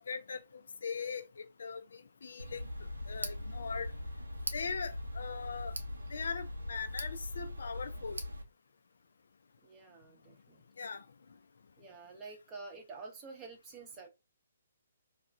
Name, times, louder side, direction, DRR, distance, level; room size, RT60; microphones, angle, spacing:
voice 1, 0.0-2.7 3.1-3.9 4.5-5.7 6.1-8.2 10.8-11.1, left 5 dB, 60° left, 0.3 m, -40 dB
Tick, 2.4-8.4, left 1 dB, 85° right, 0.5 m, -40 dB
voice 2, 9.6-10.6 11.8-14.1, right 4 dB, 20° right, 0.8 m, -49 dB
2.3 x 2.1 x 3.2 m
figure-of-eight pair, 130°, 0 cm